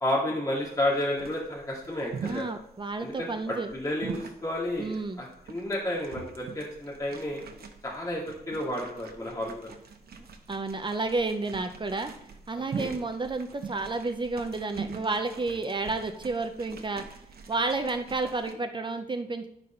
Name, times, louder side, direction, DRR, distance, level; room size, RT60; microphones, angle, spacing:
voice 1, 0.0-2.5 3.0-7.4 7.8-9.7 12.6-12.9, left 1 dB, 20° left, -5 dB, 2.1 m, -31 dB
sound 1, 0.6-18.5, right 5 dB, 75° right, 1.1 m, -43 dB
voice 2, 2.2-3.7 4.8-5.2 10.5-12.1 12.5-17.0 17.5-19.5, right 3 dB, 30° right, 7 dB, 0.6 m, -31 dB
11.0 x 4.1 x 5.5 m, 0.74 s
wide cardioid pair, 140°, 16 cm